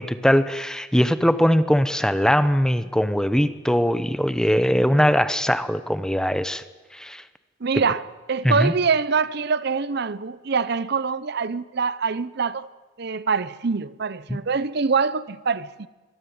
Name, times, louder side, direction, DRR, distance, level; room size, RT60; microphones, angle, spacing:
voice 1, 0.0-6.6 6.9-7.2 8.4-8.7 14.3-14.4, equal, 5° left, 0.8 m, -21 dB
voice 2, 7.6-8.0 8.3-12.7 13.0-15.9, right 5 dB, 55° right, 0.7 m, -24 dB
23.5 x 17.0 x 9.5 m
head